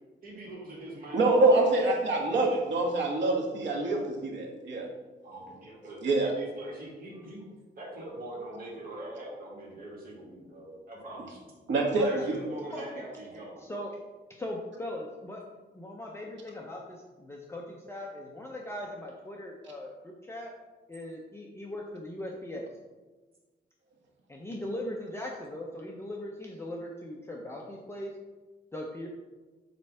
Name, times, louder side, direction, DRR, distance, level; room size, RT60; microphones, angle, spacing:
voice 1, 0.2-1.8 5.2-7.5 7.8-11.5 12.0-13.6, right 1 dB, 55° right, -5 dB, 2.1 m, -43 dB
voice 2, 1.1-4.9 6.0-6.3 11.7-12.3 19.6-19.7, right 2 dB, 85° right, 0 dB, 1.6 m, -25 dB
voice 3, 12.7-13.0 13.6-13.9 14.4-20.5 20.9-22.6 24.3-28.1 28.7-29.1, left 1 dB, 15° left, -1 dB, 0.6 m, -39 dB
7.8 x 3.3 x 5.4 m, 1.3 s
wide cardioid pair, 165°, 18 cm